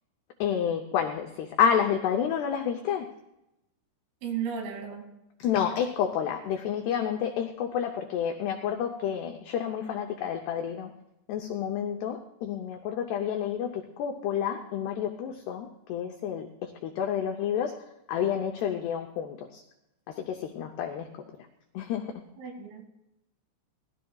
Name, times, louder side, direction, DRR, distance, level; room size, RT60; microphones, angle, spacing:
voice 1, 0.4-3.1 5.4-10.9 11.3-17.8 18.1-19.6 20.1-21.1 21.7-22.1, left 8 dB, 90° left, 4 dB, 2.3 m, -29 dB
voice 2, 4.2-5.1 22.4-22.8, right 7 dB, 85° right, 3 dB, 4.8 m, -34 dB
20.5 x 14.0 x 2.3 m, 0.90 s
omnidirectional pair, 5.8 m